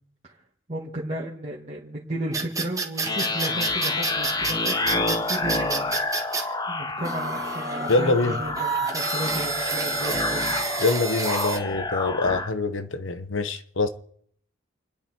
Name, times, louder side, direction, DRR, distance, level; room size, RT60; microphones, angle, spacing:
voice 1, 0.7-5.9 6.7-10.6, right 1 dB, 35° right, 2.1 m, -34 dB
sound 1, 2.3-6.4 7.0-11.6, right 3 dB, 15° right, 1.5 m, -29 dB
sound 2, 3.0-12.5, left 3 dB, 20° left, 1.1 m, -28 dB
voice 2, 7.9-8.4 10.8-13.9, left 3 dB, 75° left, 1.0 m, -24 dB
28.5 x 10.5 x 4.5 m
head